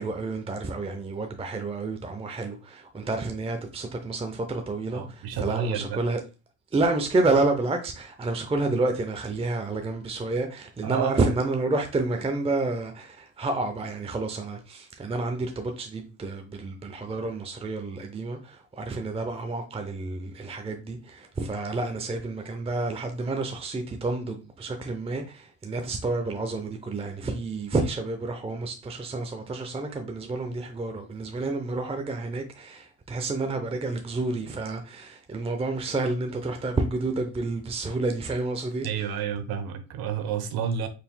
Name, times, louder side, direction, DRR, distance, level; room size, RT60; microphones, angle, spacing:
voice 1, 0.0-6.2 6.7-39.2, right 3 dB, 15° right, 0.6 m, -29 dB
voice 2, 4.9-6.0 10.8-11.2 38.8-40.9, right 7 dB, 65° right, 0.9 m, -30 dB
4.6 x 3.4 x 2.2 m
supercardioid pair, 65°, 39 cm